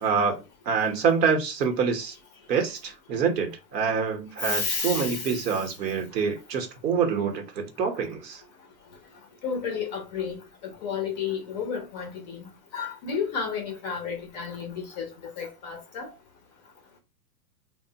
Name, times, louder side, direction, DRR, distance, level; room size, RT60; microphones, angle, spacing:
voice 1, 0.0-2.2 2.5-8.4, right 6 dB, 90° right, 1.0 m, -26 dB
voice 2, 4.4-5.3 9.4-10.4 10.8-12.4 12.7-15.1 15.4-16.1, left 6 dB, 30° left, 0.4 m, -31 dB
2.9 x 2.0 x 2.7 m
hypercardioid pair, 135°, 48 cm